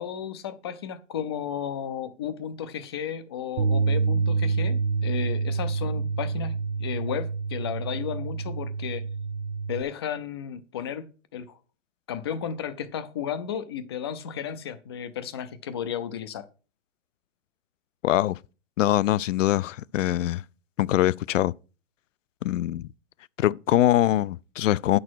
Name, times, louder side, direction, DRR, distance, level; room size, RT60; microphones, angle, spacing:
voice 1, 0.0-9.1 9.7-11.1 11.3-11.6 12.1-16.5, left 8 dB, 20° left, 0.4 m, -33 dB
Bass guitar, 3.6-9.8, right 4 dB, 30° right, 0.6 m, -27 dB
voice 2, 18.0-18.4 18.8-20.4 20.8-21.5 22.4-22.9 23.4-25.0, left 13 dB, 85° left, 0.5 m, -23 dB
9.0 x 6.3 x 4.5 m
hypercardioid pair, 155°, 37 cm